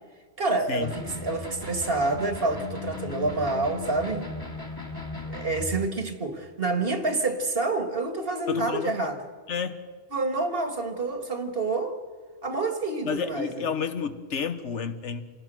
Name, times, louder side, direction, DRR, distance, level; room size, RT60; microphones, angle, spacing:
voice 1, 0.4-4.3 5.2-9.2 10.1-12.0 12.4-13.5, right 3 dB, 55° right, 2.0 m, -28 dB
sound 1, 0.8-5.9, left 3 dB, 20° left, 1.8 m, -37 dB
voice 2, 8.5-9.0 9.5-9.8 13.0-15.2, left 6 dB, 80° left, 1.5 m, -30 dB
27.0 x 19.0 x 6.3 m
omnidirectional pair, 1.2 m